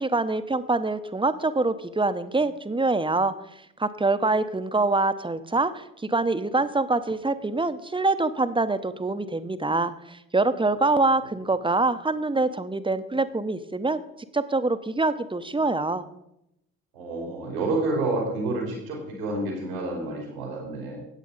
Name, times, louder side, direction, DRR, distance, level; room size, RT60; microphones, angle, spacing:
voice 1, 0.0-3.3 3.8-16.0, right 3 dB, 15° right, 11 dB, 0.9 m, -25 dB
voice 2, 16.9-21.0, right 2 dB, 85° right, -1 dB, 2.8 m, -29 dB
17.0 x 8.3 x 4.0 m, 0.83 s
figure-of-eight pair, 40°, 40 cm